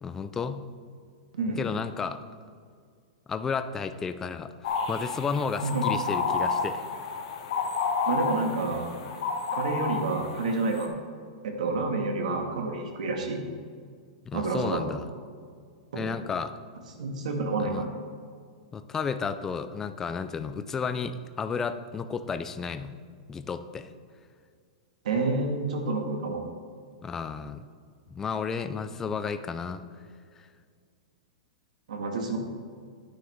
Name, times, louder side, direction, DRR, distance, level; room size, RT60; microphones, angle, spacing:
voice 1, 0.0-0.6 1.6-2.2 3.3-6.8 14.2-15.1 15.9-16.5 17.7-17.8 18.7-23.0 23.3-23.9 27.0-27.7 28.1-29.8 30.4-30.5, left 5 dB, 10° left, 10 dB, 0.3 m, -32 dB
sound 1, 4.6-10.9, left 5 dB, 55° left, 1.2 m, -30 dB
voice 2, 8.1-8.9 9.5-10.9 11.4-13.4 14.3-14.8 15.9-16.1 17.0-17.9 25.0-26.4 31.9-32.4, right 3 dB, 85° right, 3 dB, 1.8 m, -29 dB
9.7 x 9.5 x 3.6 m, 2.1 s
supercardioid pair, 170°, 4 cm